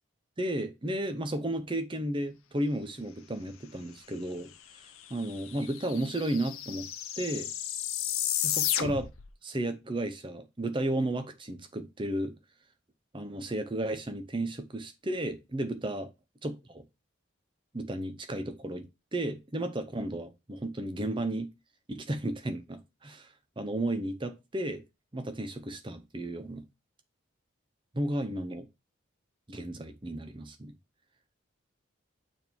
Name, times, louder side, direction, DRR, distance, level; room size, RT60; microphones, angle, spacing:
voice 1, 0.4-4.5 5.1-6.9 7.2-7.5 8.4-9.1 9.4-12.4 13.1-16.1 16.4-16.8 17.7-18.8 19.1-21.5 21.9-24.8 25.1-26.6 27.9-28.7 29.5-30.7, right 1 dB, 25° right, 0.7 m, -33 dB
sound 1, 4.8-4.9 5.1-9.3, left 11 dB, 85° left, 0.7 m, -33 dB
6.3 x 3.6 x 4.4 m
head